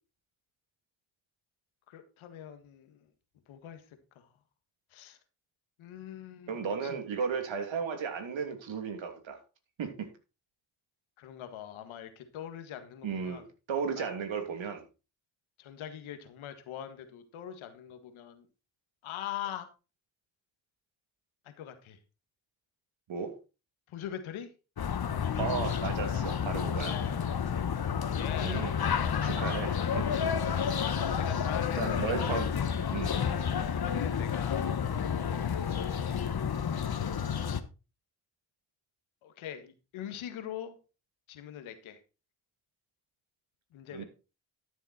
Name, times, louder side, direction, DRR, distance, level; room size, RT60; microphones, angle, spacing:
voice 1, 1.9-3.1 3.5-4.3 4.9-5.2 5.8-7.0 11.2-13.5 14.0-14.1 15.6-18.5 19.0-19.7 21.4-22.0 23.9-24.5 26.8-27.4 27.9-28.6 28.9-29.3 31.2-32.6 33.7-34.7 35.4-36.4 39.2-40.8 41.3-42.0 43.7-44.0, left 10 dB, 90° left, 8 dB, 1.7 m, -43 dB
voice 2, 6.5-9.4 9.8-10.1 13.0-14.8 23.1-23.3 25.4-27.0 28.4-28.7 29.2-30.1 31.8-32.5 32.9-33.1 43.9-44.0, right 6 dB, 75° right, 6 dB, 2.9 m, -34 dB
sound 1, 24.8-37.6, left 7 dB, 50° left, 1.4 m, -30 dB
13.0 x 7.2 x 4.3 m, 0.31 s
supercardioid pair, 50°, 47 cm